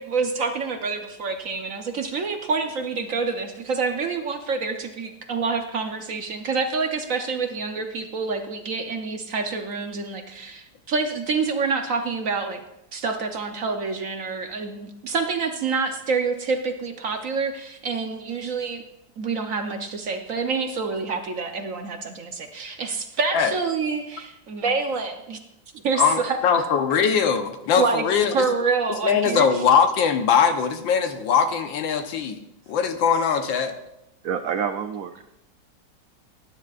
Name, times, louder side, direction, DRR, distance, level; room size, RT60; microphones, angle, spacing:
voice 1, 0.0-12.6 12.9-18.8 19.2-25.4 25.8-26.6 27.8-28.0 28.3-29.6, right 4 dB, 55° right, 5 dB, 1.0 m, -27 dB
voice 2, 26.0-28.5 29.0-32.4 32.7-33.7, left 7 dB, 85° left, 7 dB, 1.7 m, -21 dB
voice 3, 34.2-35.3, right 7 dB, 80° right, 9 dB, 0.7 m, -28 dB
18.0 x 10.0 x 2.4 m, 0.86 s
omnidirectional pair, 2.0 m